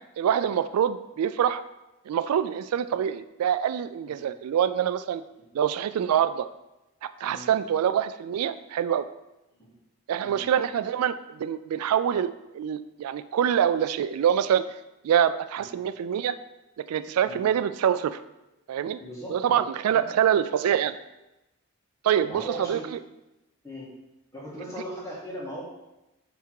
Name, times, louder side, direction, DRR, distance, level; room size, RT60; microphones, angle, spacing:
voice 1, 0.2-1.6 2.1-5.2 5.5-6.5 7.0-9.1 10.1-14.6 15.0-16.4 16.9-18.2 18.7-19.0 19.3-21.0 22.0-22.8, right 9 dB, 85° right, 12 dB, 0.3 m, -25 dB
voice 2, 19.0-19.6 19.9-20.0 22.3-22.9 23.6-23.9 24.3-25.6, equal, 15° left, -5 dB, 1.7 m, -38 dB
8.1 x 3.4 x 4.7 m, 0.96 s
head